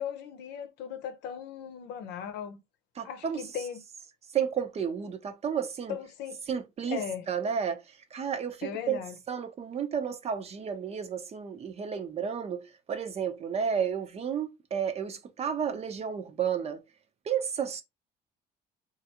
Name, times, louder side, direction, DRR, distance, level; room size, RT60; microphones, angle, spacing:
voice 1, 0.0-2.6 3.0-3.8 5.9-6.4 6.9-7.3 8.6-9.1, left 8 dB, 85° left, 0.7 m, -37 dB
voice 2, 3.0-3.4 4.3-6.0 6.5-9.0 9.3-16.8 17.2-17.8, right 7 dB, 40° right, 0.6 m, -32 dB
3.1 x 2.5 x 2.8 m
cardioid pair, 110°, 17 cm